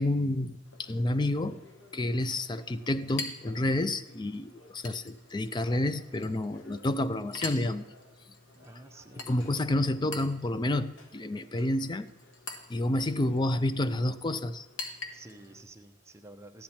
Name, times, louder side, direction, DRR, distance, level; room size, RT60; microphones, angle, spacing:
voice 1, 0.0-1.6 1.9-7.9 9.3-12.1 12.7-14.7, left 1 dB, 20° left, 13 dB, 0.4 m, -29 dB
Chink clink, 0.6-15.6, left 3 dB, 65° left, 1.4 m, -46 dB
voice 2, 8.5-9.5 15.1-16.6, right 2 dB, 15° right, 6 dB, 0.7 m, -50 dB
14.0 x 10.0 x 4.3 m, 1.1 s
head